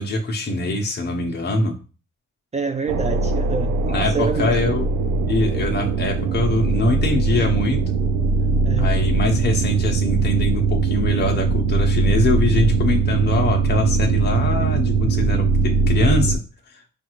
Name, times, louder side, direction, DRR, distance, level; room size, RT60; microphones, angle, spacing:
voice 1, 0.0-1.7 3.9-4.9 5.3-7.8 8.8-16.4, left 2 dB, 35° left, 0.8 m, -23 dB
voice 2, 2.5-4.8 8.6-8.9, right 5 dB, 25° right, 0.4 m, -27 dB
sound 1, 2.9-16.4, right 4 dB, 80° right, 0.5 m, -21 dB
5.0 x 2.4 x 3.0 m
cardioid pair, 90°, 30 cm